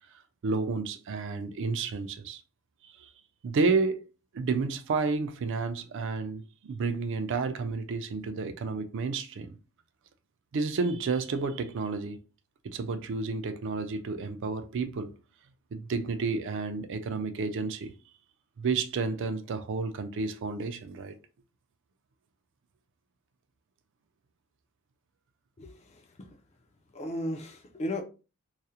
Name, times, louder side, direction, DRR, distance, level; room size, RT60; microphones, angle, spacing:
voice 1, 0.4-2.4 2.8-3.1 3.4-4.0 4.3-9.6 10.5-12.2 12.6-15.1 15.7-17.9 18.6-21.2, right 4 dB, 60° right, 0.4 m, -31 dB
voice 2, 25.6-26.4 26.9-28.0, left 1 dB, 30° left, 0.4 m, -36 dB
2.3 x 2.0 x 2.7 m
head